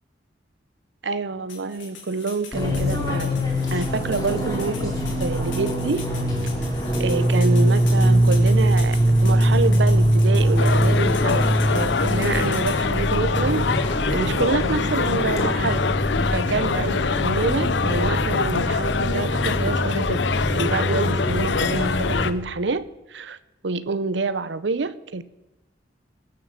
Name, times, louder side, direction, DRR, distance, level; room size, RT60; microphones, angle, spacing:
voice 1, 1.0-3.3 3.7-6.1 7.0-13.7 14.1-15.9 16.3-20.2 20.5-23.4 23.6-25.2, right 3 dB, 70° right, 0.7 m, -27 dB
sound 1, 1.5-12.8, left 6 dB, 85° left, 3.6 m, -41 dB
Fixed-wing aircraft airplane, 2.5-22.2, equal, 20° left, 3.1 m, -22 dB
sound 2, 10.6-22.3, left 5 dB, 70° left, 0.6 m, -25 dB
21.5 x 7.5 x 7.4 m
head